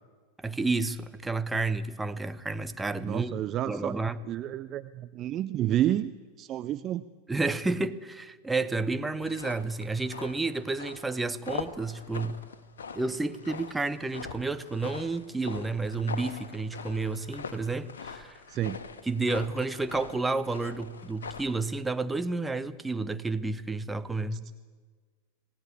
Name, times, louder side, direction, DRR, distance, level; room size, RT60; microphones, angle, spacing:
voice 1, 0.4-3.4 3.7-4.2 7.3-12.4 12.9-18.4 19.0-24.5, right 3 dB, 10° right, 1.1 m, -31 dB
voice 2, 3.0-3.9 4.2-6.1 6.4-7.1 18.5-18.8 24.3-24.5, right 12 dB, 30° right, 0.6 m, -30 dB
sound 1, 9.2-21.6, left 5 dB, 65° left, 1.6 m, -43 dB
26.0 x 18.0 x 8.5 m
figure-of-eight pair, 90°, 0 cm